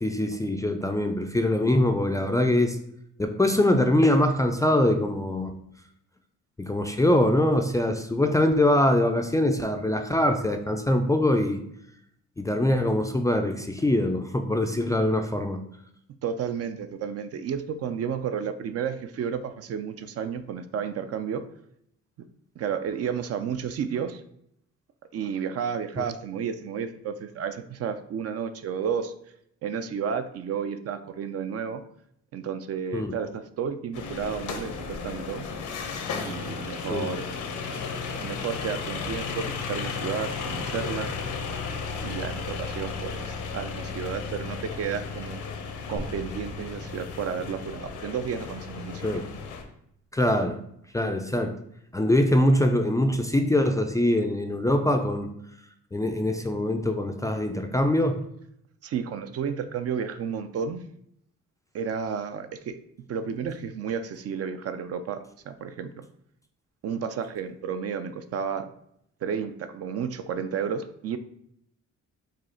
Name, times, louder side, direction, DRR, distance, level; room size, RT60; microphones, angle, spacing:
voice 1, 0.0-2.8 3.2-5.5 6.6-11.6 12.4-15.6 26.0-26.1 32.9-33.1 36.9-37.1 49.0-49.3 50.1-50.6 50.9-51.5 51.9-55.3 55.9-58.2, left 1 dB, 10° left, 5 dB, 0.3 m, -23 dB
voice 2, 16.2-21.5 22.6-24.2 25.1-29.1 29.6-31.8 32.3-35.4 36.2-37.4 38.0-41.1 42.0-45.4 45.9-49.2 58.8-60.8 61.7-62.8 63.1-65.9 66.8-68.7 69.2-71.2, right 7 dB, 55° right, 10 dB, 0.4 m, -32 dB
sound 1, 33.9-49.6, left 5 dB, 80° left, 0.8 m, -34 dB
sound 2, 45.9-50.0, right 1 dB, 90° right, 1.1 m, -44 dB
4.9 x 2.4 x 4.3 m, 0.73 s
cardioid pair, 90°, 30 cm